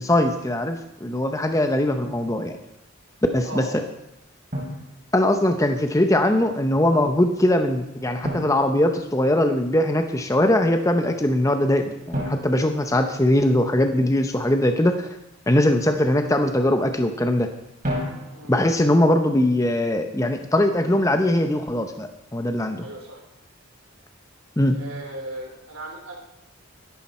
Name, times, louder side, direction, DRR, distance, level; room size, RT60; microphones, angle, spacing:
voice 1, 0.0-2.6 3.3-3.6 5.1-15.1 15.5-17.5 18.5-22.9 24.6-24.8, left 1 dB, 15° left, 6 dB, 0.7 m, -21 dB
Drum, 2.1-2.3 4.5-5.7 8.2-9.6 12.1-13.8 17.8-18.8, equal, 40° right, 3.8 m, -33 dB
voice 2, 3.4-3.8 18.3-18.5 22.8-23.2 24.7-26.2, right 1 dB, 80° right, 1 dB, 3.7 m, -37 dB
13.5 x 11.5 x 4.3 m, 0.86 s
head